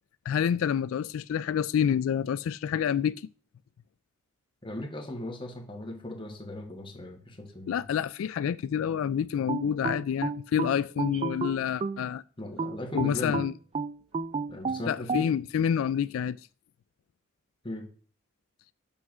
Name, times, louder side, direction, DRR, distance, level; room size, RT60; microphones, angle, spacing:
voice 1, 0.3-3.2 7.7-12.2 12.9-13.5 14.9-16.4, left 8 dB, 85° left, 0.3 m, -28 dB
voice 2, 4.6-7.7 12.4-13.4 14.5-15.3 17.6-17.9, left 1 dB, 25° left, 1.5 m, -38 dB
sound 1, 9.5-12.1 12.6-15.3, right 4 dB, 30° right, 0.3 m, -32 dB
7.3 x 6.0 x 6.1 m
head